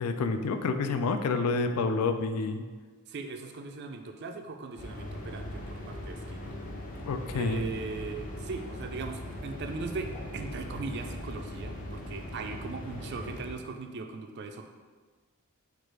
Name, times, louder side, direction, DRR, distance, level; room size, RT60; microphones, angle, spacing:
voice 1, 0.0-2.6 7.0-7.6, left 4 dB, 85° left, 8 dB, 0.4 m, -28 dB
voice 2, 3.1-6.5 7.3-14.7, right 3 dB, 50° right, 6 dB, 0.3 m, -39 dB
sound 1, 4.8-13.5, left 1 dB, 35° left, 0.5 m, -40 dB
4.7 x 2.4 x 4.7 m, 1.4 s
head